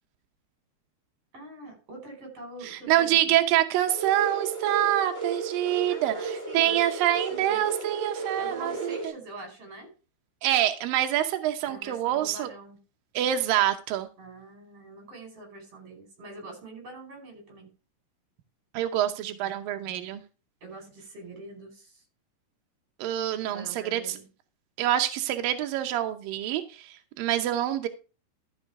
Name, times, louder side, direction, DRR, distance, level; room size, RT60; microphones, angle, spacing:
voice 1, 1.3-3.4 5.9-6.8 7.3-7.6 8.4-9.9 11.7-12.8 14.2-17.7 20.6-22.0 23.5-24.3, right 2 dB, 35° right, 3 dB, 5.6 m, -44 dB
voice 2, 2.9-9.0 10.4-12.5 13.1-14.1 18.7-20.2 23.0-24.0 24.8-27.9, right 12 dB, 80° right, 6 dB, 2.0 m, -26 dB
sound 1, 3.9-9.1, right 4 dB, 5° right, 4.8 m, -33 dB
13.0 x 6.2 x 4.7 m, 0.32 s
omnidirectional pair, 5.1 m